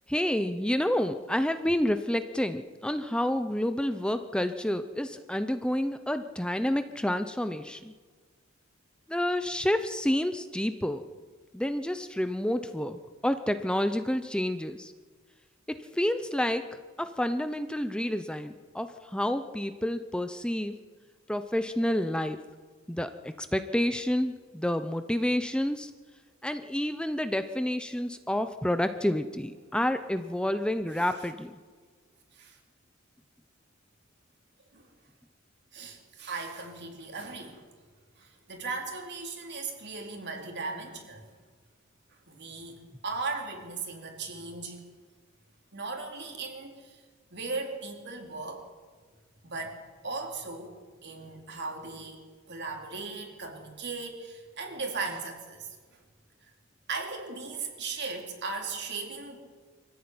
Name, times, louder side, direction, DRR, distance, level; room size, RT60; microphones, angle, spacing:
voice 1, 0.1-7.9 9.1-11.0 11.5-14.9 15.7-16.7 17.0-20.7 21.3-22.4 22.9-25.9 26.4-31.6, left 1 dB, 5° left, 9 dB, 0.7 m, -29 dB
voice 2, 35.7-37.6 38.2-41.2 42.3-42.8 43.0-44.8 45.7-47.0 47.3-48.7 49.4-49.8 50.0-50.7 51.0-55.7 56.9-59.4, right 4 dB, 55° right, 2 dB, 4.2 m, -37 dB
24.0 x 14.5 x 9.7 m, 1.5 s
head